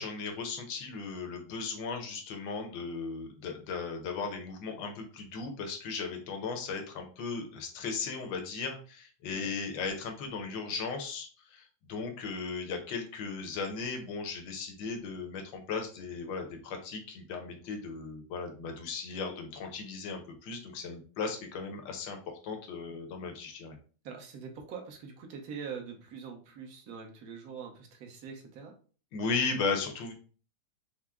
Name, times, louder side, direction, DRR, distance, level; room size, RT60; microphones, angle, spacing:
voice 1, 0.0-22.2 22.4-23.8 29.1-30.1, left 4 dB, 75° left, 4 dB, 1.6 m, -36 dB
voice 2, 24.0-28.7, right 6 dB, 55° right, 2 dB, 1.3 m, -43 dB
5.8 x 2.1 x 3.6 m, 0.39 s
omnidirectional pair, 2.1 m